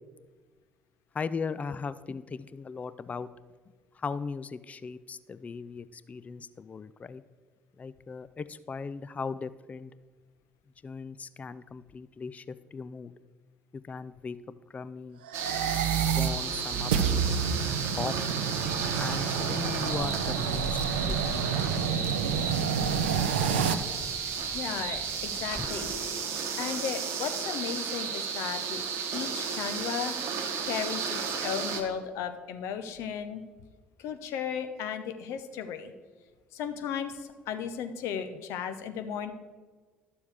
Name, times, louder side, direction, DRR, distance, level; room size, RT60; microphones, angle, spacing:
voice 1, 1.1-3.3 3.9-7.2 7.8-9.9 10.8-13.1 13.7-15.2 16.2-17.3 18.0-18.1 19.0-22.6 25.6-25.7, left 5 dB, 30° left, 15 dB, 0.4 m, -38 dB
sound 1, 15.2-23.7, right 7 dB, 80° right, 0.5 m, -29 dB
sound 2, 15.3-31.8, right 6 dB, 65° right, 1.0 m, -33 dB
sound 3, 18.6-26.1, equal, 15° right, 0.7 m, -43 dB
voice 2, 24.5-26.2 26.6-28.8 29.1-33.4 34.0-35.9 36.5-39.3, left 8 dB, 65° left, 8 dB, 0.7 m, -35 dB
12.0 x 7.0 x 3.5 m, 1.4 s
figure-of-eight pair, 50°, 5 cm